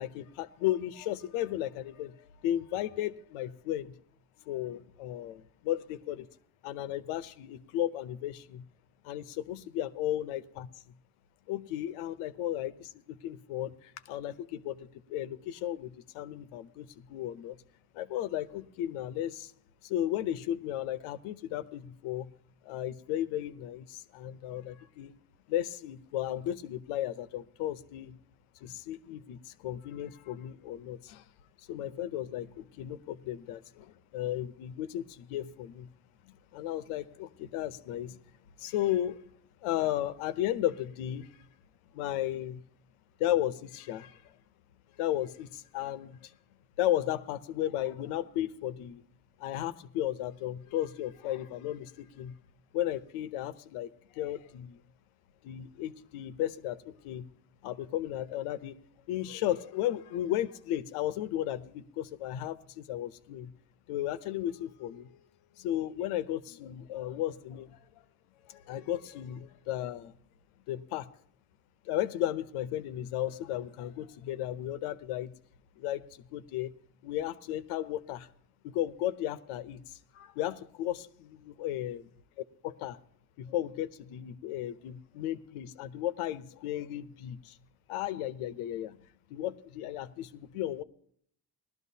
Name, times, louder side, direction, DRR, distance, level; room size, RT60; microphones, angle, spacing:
voice 1, 0.0-2.2 2.4-3.9 4.5-6.2 6.6-8.6 9.0-10.7 11.5-17.6 17.9-19.5 19.8-22.3 22.6-25.1 25.5-28.2 28.6-31.2 31.7-35.9 36.2-38.2 38.6-39.2 39.6-41.4 41.9-42.6 43.2-44.3 45.0-46.3 46.8-49.0 49.4-52.3 52.7-54.8 55.4-57.3 57.6-58.7 59.1-63.5 63.9-65.1 65.6-67.8 68.5-70.1 70.7-71.1 71.8-75.3 75.8-76.7 77.0-78.3 78.6-82.1 82.6-83.0 83.4-87.6 87.9-89.0 89.3-90.8, left 12 dB, 85° left, 0.8 m, -34 dB
19.0 x 12.0 x 2.8 m
supercardioid pair, 65°, 49 cm